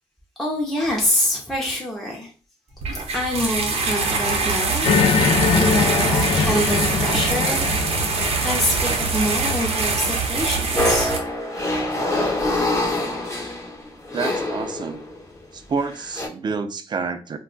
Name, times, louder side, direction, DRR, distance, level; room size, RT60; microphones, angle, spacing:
voice 1, 0.4-2.3 3.1-4.9 5.5-8.0 8.4-11.1 13.4-13.5, equal, ahead, 0.7 m, -25 dB
sound 1, 2.8-11.2, right 4 dB, 90° right, 0.7 m, -23 dB
sound 2, 4.8-10.4, left 6 dB, 75° left, 0.4 m, -23 dB
sound 3, 10.8-15.2 15.9-16.3, left 1 dB, 30° left, 0.9 m, -25 dB
voice 2, 14.1-15.0 15.5-17.4, right 5 dB, 45° right, 0.4 m, -28 dB
2.3 x 2.2 x 3.7 m
cardioid pair, 100°, 10 cm